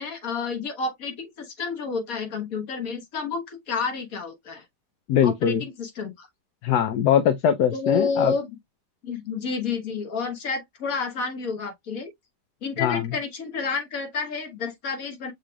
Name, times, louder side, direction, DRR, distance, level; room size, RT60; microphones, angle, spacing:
voice 1, 0.0-4.6 5.2-6.3 7.7-8.5 9.0-12.1 12.6-15.3, left 4 dB, 55° left, 1.7 m, -30 dB
voice 2, 5.1-5.6 6.6-8.3 12.8-13.0, left 9 dB, 70° left, 1.2 m, -21 dB
6.5 x 3.3 x 2.3 m
omnidirectional pair, 1.9 m